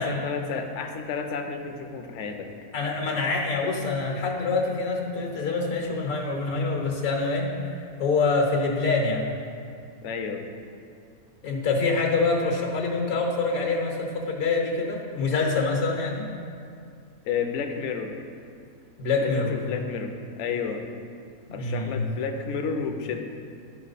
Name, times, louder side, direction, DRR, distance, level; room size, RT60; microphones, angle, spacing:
voice 1, 0.0-2.5 10.0-10.4 17.2-18.2 19.2-20.8 21.5-23.3, left 6 dB, 60° left, 5 dB, 0.9 m, -31 dB
voice 2, 2.7-9.3 11.4-16.3 19.0-19.6 21.5-22.0, left 3 dB, 75° left, 0 dB, 1.6 m, -26 dB
11.5 x 5.6 x 4.1 m, 2.4 s
omnidirectional pair, 1.5 m